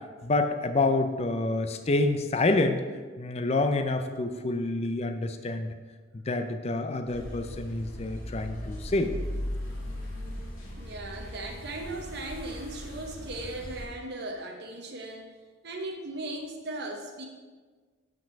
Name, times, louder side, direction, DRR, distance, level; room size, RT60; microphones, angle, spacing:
voice 1, 0.2-2.8 3.2-5.7 6.1-9.1, left 2 dB, 30° left, 7 dB, 0.4 m, -27 dB
sound 1, 7.1-13.8, left 1 dB, 85° left, 2.3 m, -38 dB
voice 2, 9.5-9.9 10.7-15.3 15.6-17.2, right 2 dB, 55° right, 1 dB, 0.9 m, -38 dB
5.8 x 5.3 x 6.4 m, 1.4 s
head